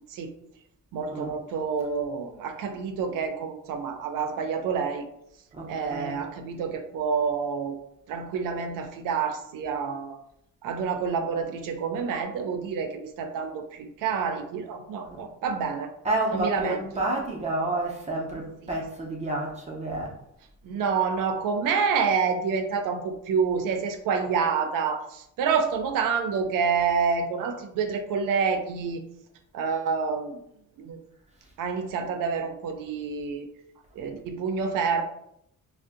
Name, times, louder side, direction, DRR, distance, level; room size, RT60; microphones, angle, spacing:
voice 1, 0.9-5.1 5.7-7.8 8.1-10.2 10.6-15.9 16.3-17.0 18.6-18.7 20.6-29.0 29.5-30.4 30.8-31.0 31.6-33.5 33.9-35.0, right 5 dB, 80° right, 7 dB, 0.5 m, -28 dB
voice 2, 5.5-6.3 15.1-15.3 16.0-20.1, right 2 dB, 20° right, -2 dB, 0.4 m, -30 dB
2.6 x 2.1 x 3.6 m, 0.75 s
cardioid pair, 175°, 32 cm